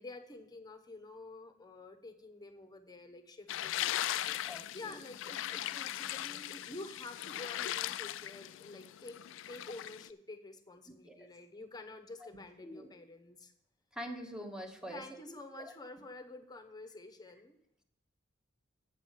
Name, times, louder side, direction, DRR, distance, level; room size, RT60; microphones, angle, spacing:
voice 1, 0.0-9.2 9.5-13.5 14.8-17.6, left 2 dB, 20° left, 6 dB, 0.9 m, -49 dB
sound 1, 3.5-10.1, left 13 dB, 70° left, 0.3 m, -39 dB
voice 2, 4.4-5.0 11.1-11.3 12.6-12.9 13.9-15.7, equal, 5° right, 4 dB, 1.0 m, -45 dB
8.2 x 6.2 x 7.2 m, 0.80 s
head